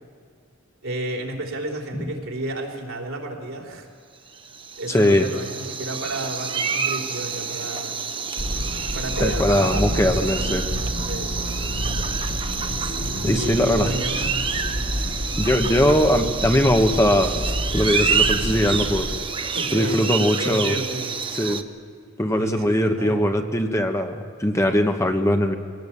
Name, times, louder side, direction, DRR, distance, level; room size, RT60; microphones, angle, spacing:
voice 1, 0.8-3.9 4.8-7.9 8.9-10.7 11.1-11.3 13.2-14.3 18.5-18.8 19.5-21.2 22.3-23.3, right 1 dB, 85° right, 1 dB, 3.6 m, -32 dB
sound 1, 4.3-21.6, right 5 dB, 25° right, 0.8 m, -28 dB
voice 2, 4.9-5.2 9.2-10.6 13.2-13.9 15.4-17.4 17.7-19.1 19.7-20.8 21.3-21.6 22.2-25.5, equal, 15° left, 5 dB, 1.2 m, -20 dB
sound 2, 8.4-19.2, equal, 65° left, 1.2 m, -29 dB
22.5 x 17.5 x 8.7 m, 2.2 s
head